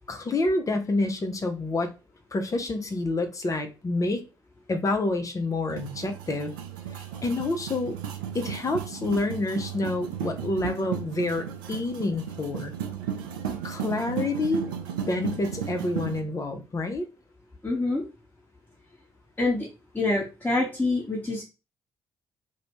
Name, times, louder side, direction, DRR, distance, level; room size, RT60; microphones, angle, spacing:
voice 1, 0.1-1.9 2.3-4.2 4.7-6.5 7.2-8.0 8.3-12.7 13.6-14.7 15.1-17.1, left 2 dB, 30° left, 0.6 m, -28 dB
sound 1, 5.7-16.2, right 8 dB, 80° right, 0.4 m, -35 dB
voice 2, 17.6-18.0 19.4-19.7 19.9-21.4, left 2 dB, 15° left, 1.1 m, -26 dB
2.5 x 2.1 x 3.0 m
figure-of-eight pair, 45°, 11 cm